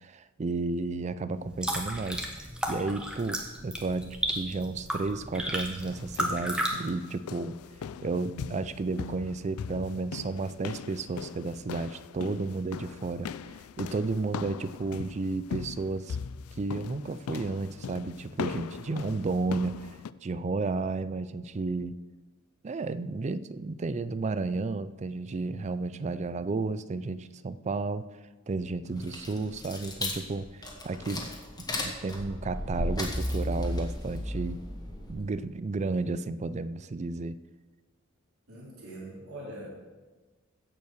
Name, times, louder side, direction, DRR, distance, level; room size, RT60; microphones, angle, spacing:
voice 1, 0.0-2.3 2.7-7.5 8.0-13.3 13.8-16.2 16.6-20.0 20.2-22.0 22.6-28.0 28.5-31.3 32.0-34.6 35.1-37.3, right 3 dB, 30° right, 15 dB, 0.4 m, -32 dB
sound 1, 1.4-6.7, right 1 dB, 5° right, 1.3 m, -33 dB
sound 2, 5.8-20.1, left 6 dB, 90° left, 0.4 m, -40 dB
sound 3, 28.9-35.4, left 1 dB, 20° left, 1.8 m, -34 dB
voice 2, 28.9-29.5 38.5-39.7, right 1 dB, 85° right, -5 dB, 4.1 m, -43 dB
16.0 x 5.5 x 6.4 m, 1.3 s
head